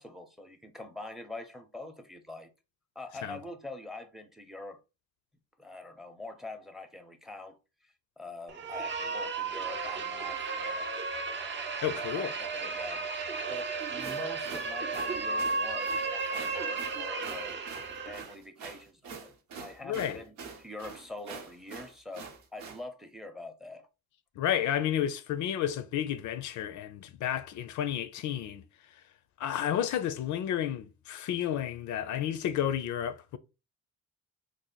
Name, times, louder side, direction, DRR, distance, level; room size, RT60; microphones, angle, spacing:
voice 1, 0.0-2.5 3.0-4.8 5.6-7.6 7.8-10.9 11.9-13.1 13.5-17.7 18.0-23.9, left 2 dB, ahead, 0.6 m, -44 dB
sound 1, 8.5-18.3, right 4 dB, 40° right, 0.6 m, -34 dB
voice 2, 11.8-12.3 19.8-20.2 24.4-28.6 29.4-33.4, left 10 dB, 75° left, 0.5 m, -31 dB
sound 2, 13.8-22.8, right 5 dB, 90° right, 0.8 m, -45 dB
3.2 x 2.0 x 3.9 m
cardioid pair, 90°, 30 cm